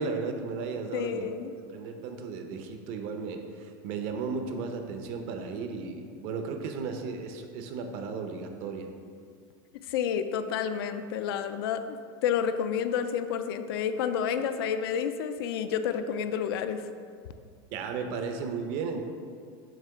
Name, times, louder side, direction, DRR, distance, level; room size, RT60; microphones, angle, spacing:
voice 1, 0.0-1.3 1.7-8.9 17.7-19.0, right 4 dB, 55° right, 5 dB, 0.7 m, -35 dB
voice 2, 0.9-1.5 9.9-12.0 12.2-16.8, left 8 dB, 90° left, 9 dB, 0.4 m, -30 dB
7.4 x 2.9 x 5.7 m, 2.2 s
supercardioid pair, 160°, 12 cm